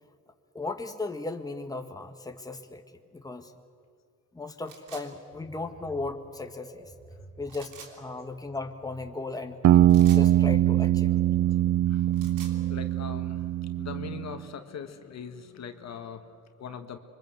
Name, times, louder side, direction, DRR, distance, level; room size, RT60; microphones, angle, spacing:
voice 1, 0.5-2.8 3.1-3.5 4.3-6.9 7.4-9.6 10.1-11.2, left 3 dB, 10° left, 5 dB, 1.7 m, -36 dB
sound 1, 4.7-5.1 7.5-7.9 9.9-10.3 12.0-12.6, right 6 dB, 90° right, 3.3 m, -46 dB
sound 2, 5.0-13.6, right 2 dB, 20° right, 5.5 m, -51 dB
sound 3, 9.6-14.3, right 12 dB, 60° right, 0.6 m, -22 dB
voice 2, 11.3-17.0, left 7 dB, 60° left, 7 dB, 1.8 m, -42 dB
26.0 x 23.5 x 8.0 m, 2.1 s
cardioid pair, 90°, 30 cm